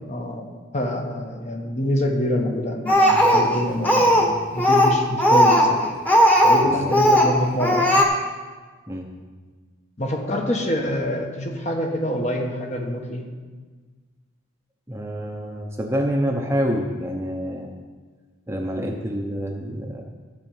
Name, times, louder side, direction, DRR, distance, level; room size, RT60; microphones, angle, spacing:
voice 1, 0.1-5.9 6.4-8.0 10.0-13.3, left 1 dB, 35° left, 2 dB, 1.2 m, -26 dB
Speech, 2.9-4.3 4.6-6.7 6.9-7.3 7.6-8.0, equal, 10° left, 1.3 m, -16 dB
voice 2, 14.9-17.7 18.5-20.0, equal, 15° right, 1 dB, 0.8 m, -27 dB
13.5 x 5.0 x 7.3 m, 1.4 s
head